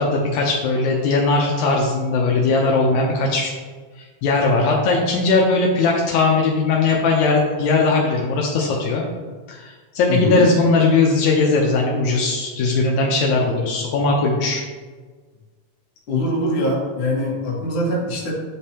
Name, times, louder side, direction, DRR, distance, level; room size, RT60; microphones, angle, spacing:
voice 1, 0.0-3.5 4.0-9.0 9.5-14.6, left 3 dB, 80° left, -1 dB, 2.1 m, -19 dB
voice 2, 10.1-10.5 16.1-18.3, left 1 dB, 50° left, -4 dB, 2.2 m, -22 dB
9.0 x 5.2 x 2.9 m, 1.4 s
omnidirectional pair, 3.4 m